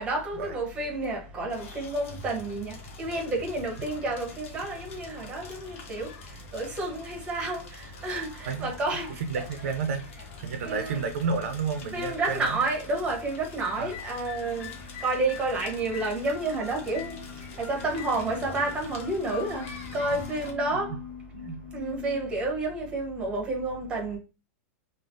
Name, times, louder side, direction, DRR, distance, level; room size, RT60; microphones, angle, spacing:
voice 1, 0.0-6.1 6.5-9.4 10.6-11.0 11.9-14.7 15.0-17.2 17.6-19.7 19.9-21.0 21.7-24.2, right 2 dB, 15° right, 0.9 m, -30 dB
Crackle, 1.5-20.5, left 3 dB, 60° left, 0.9 m, -45 dB
voice 2, 9.3-10.0 10.4-12.6 13.8-13.9 21.3-21.6, right 5 dB, 70° right, 0.5 m, -31 dB
sound 1, 13.6-21.6, left 9 dB, 25° left, 0.5 m, -46 dB
sound 2, 13.8-22.2, left 9 dB, 75° left, 0.5 m, -46 dB
3.1 x 2.0 x 2.5 m
supercardioid pair, 160°, 8 cm